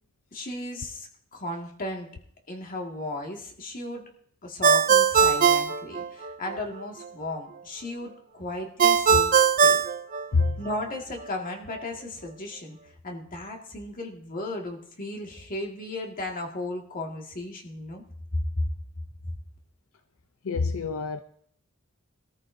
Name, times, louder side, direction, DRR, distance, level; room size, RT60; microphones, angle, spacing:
voice 1, 0.3-2.1 2.5-4.0 4.4-9.8 10.6-12.8 13.0-18.0 18.3-18.7, left 2 dB, 45° left, 2.0 m, -35 dB
Ringtone, 4.6-6.6 8.8-10.8, right 6 dB, 40° right, 0.6 m, -20 dB
voice 2, 20.4-21.2, left 4 dB, 80° left, 0.6 m, -26 dB
22.5 x 13.5 x 2.7 m
head